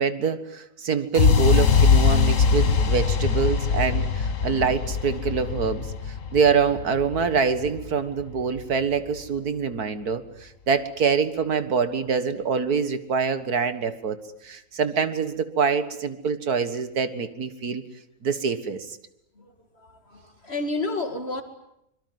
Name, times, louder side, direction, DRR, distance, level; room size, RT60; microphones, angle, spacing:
voice 1, 0.0-5.9 6.3-14.2 14.4-17.8 18.2-18.9, right 6 dB, 75° right, 11 dB, 2.1 m, -25 dB
sound 1, 1.1-9.1, left 6 dB, 55° left, 1.7 m, -22 dB
voice 2, 19.4-21.4, left 2 dB, 40° left, 7 dB, 2.8 m, -31 dB
25.5 x 23.0 x 9.6 m, 0.80 s
omnidirectional pair, 1.6 m